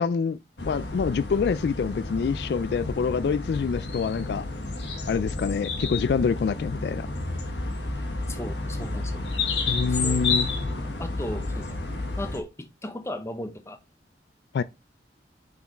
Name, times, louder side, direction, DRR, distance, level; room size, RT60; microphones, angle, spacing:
voice 1, 0.0-4.5 5.1-7.1 9.7-10.5 14.5-14.6, left 5 dB, 65° left, 0.3 m, -26 dB
sound 1, 0.6-12.4, left 3 dB, 85° left, 1.3 m, -31 dB
voice 2, 8.3-9.3 9.9-10.2 10.7-11.8 12.2-13.8, left 1 dB, 15° left, 0.8 m, -36 dB
6.6 x 5.7 x 3.0 m
head